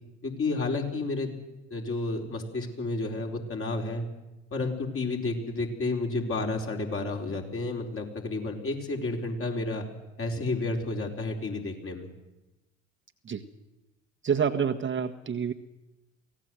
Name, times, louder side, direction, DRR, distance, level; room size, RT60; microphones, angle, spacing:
voice 1, 0.2-1.4 1.7-4.1 4.5-9.9 10.2-12.1, left 3 dB, 35° left, 1 dB, 4.6 m, -31 dB
voice 2, 14.2-15.5, right 7 dB, 30° right, 5 dB, 1.6 m, -27 dB
24.5 x 17.0 x 7.9 m, 1.0 s
hypercardioid pair, 65°, 37 cm